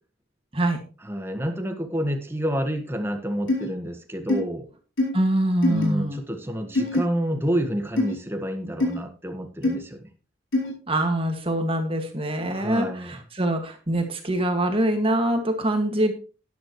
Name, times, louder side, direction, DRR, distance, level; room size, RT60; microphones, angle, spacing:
voice 1, 1.0-4.6 5.7-10.1 12.5-13.1, equal, 10° right, 5 dB, 1.5 m, -29 dB
sound 1, 3.5-3.7 4.3-4.4 5.0-5.1 5.6-5.8 6.8-7.0 8.0-8.1 8.8-9.0 9.6-9.8 10.5-10.7, left 2 dB, 90° left, 4.2 m, -23 dB
voice 2, 5.1-6.2 10.9-16.1, right 1 dB, 30° right, 4 dB, 2.1 m, -24 dB
12.0 x 11.0 x 3.2 m, 0.36 s
head